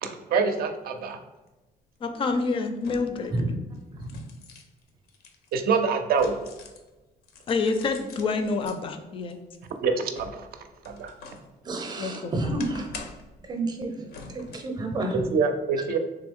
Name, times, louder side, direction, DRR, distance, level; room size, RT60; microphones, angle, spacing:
voice 1, 0.0-1.2 5.5-6.4 9.8-11.1 15.3-16.0, right 5 dB, 70° right, 6 dB, 0.5 m, -26 dB
sound 1, 1.5-1.6 2.8-3.3 3.7-6.9 7.2-8.8 9.3-11.5 11.9-13.4 14.1-14.8 15.2-15.3, left 4 dB, 75° left, 0.6 m, -45 dB
voice 2, 2.0-3.3 7.5-9.4 12.0-12.5, left 4 dB, 35° left, 7 dB, 0.4 m, -27 dB
voice 3, 3.9-4.2 11.6-13.0 13.5-15.2, right 2 dB, 25° right, 3 dB, 0.6 m, -30 dB
3.4 x 3.0 x 3.5 m, 1.1 s
cardioid pair, 165°, 16 cm